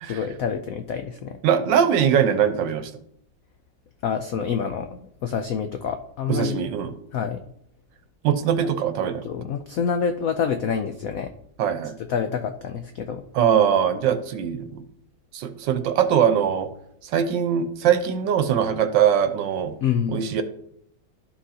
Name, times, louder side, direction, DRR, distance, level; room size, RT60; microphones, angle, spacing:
voice 1, 0.0-1.4 4.0-6.6 7.1-7.4 8.6-8.7 9.2-11.3 12.1-13.2 19.8-20.3, left 7 dB, 85° left, 6 dB, 0.7 m, -27 dB
voice 2, 1.4-2.9 6.3-6.9 8.2-9.2 11.6-12.0 13.3-14.8 15.3-16.7 17.1-19.7 20.1-20.4, right 8 dB, 70° right, 10 dB, 1.4 m, -21 dB
13.0 x 5.7 x 2.8 m, 0.72 s
omnidirectional pair, 2.2 m